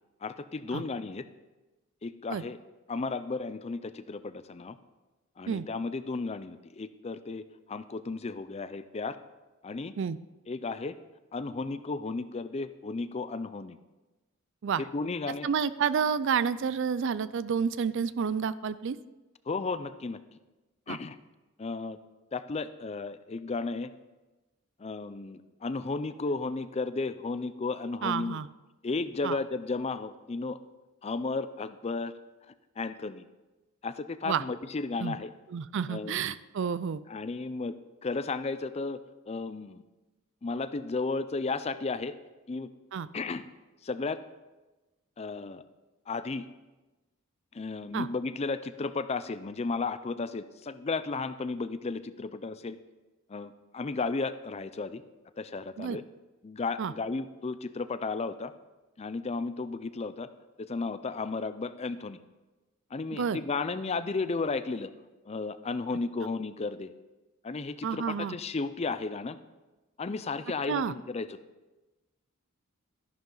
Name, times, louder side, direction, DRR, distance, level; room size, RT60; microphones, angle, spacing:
voice 1, 0.2-1.2 2.0-2.6 2.9-4.8 5.4-9.2 9.6-9.9 10.5-11.0 11.3-13.8 14.8-15.5 19.5-20.2 20.9-21.2 21.6-22.0 22.3-23.9 24.8-28.4 28.8-30.6 31.0-32.1 32.8-33.2 33.8-35.3 35.9-36.3 37.1-37.7 38.0-39.0 39.3-39.8 40.4-42.1 42.5-42.7 43.1-43.4 43.8-44.2 45.2-45.6 46.1-46.5 47.5-52.8 53.3-55.0 55.4-56.0 56.4-58.5 59.0-60.3 60.6-62.2 62.9-64.9 65.3-66.9 67.4-69.4 70.0-71.4, left 3 dB, 30° left, 13 dB, 0.4 m, -34 dB
voice 2, 15.4-19.0 20.9-21.0 28.0-28.5 29.2-29.4 34.2-34.4 35.0-35.2 35.5-37.0 42.9-43.1 47.9-48.1 55.8-56.0 56.8-56.9 63.1-63.4 67.8-68.4 70.7-70.9, right 6 dB, 55° right, 17 dB, 0.4 m, -30 dB
13.0 x 11.0 x 3.9 m, 1.1 s
head